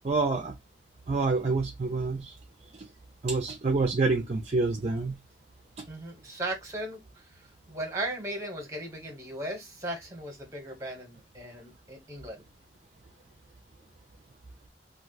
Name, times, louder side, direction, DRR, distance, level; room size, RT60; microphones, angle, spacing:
voice 1, 0.0-0.5 1.1-2.3 3.2-5.2, right 3 dB, 40° right, 0.4 m, -27 dB
voice 2, 5.9-7.4 7.7-12.4, right 1 dB, 15° right, 1.1 m, -37 dB
2.5 x 2.3 x 3.8 m
head